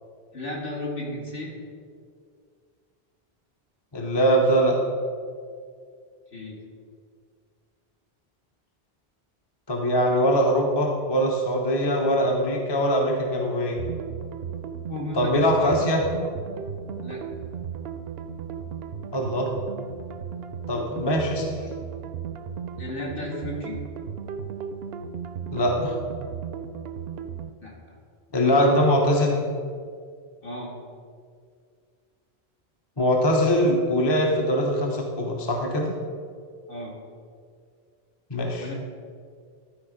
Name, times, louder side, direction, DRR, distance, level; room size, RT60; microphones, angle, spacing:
voice 1, 0.3-1.5 6.3-6.6 14.9-15.8 17.0-17.2 22.8-23.8 27.6-27.7 28.4-28.8 30.4-30.7 36.7-37.0 38.6-38.7, left 1 dB, 60° left, -3 dB, 1.9 m, -34 dB
voice 2, 3.9-4.8 9.7-13.8 15.1-16.0 19.1-19.5 20.7-21.4 25.5-26.0 28.3-29.4 33.0-36.0 38.3-38.7, equal, 25° left, 0 dB, 0.8 m, -22 dB
sound 1, 13.8-27.5, right 7 dB, 70° right, 0.8 m, -35 dB
12.0 x 4.4 x 5.0 m, 2.1 s
omnidirectional pair, 1.1 m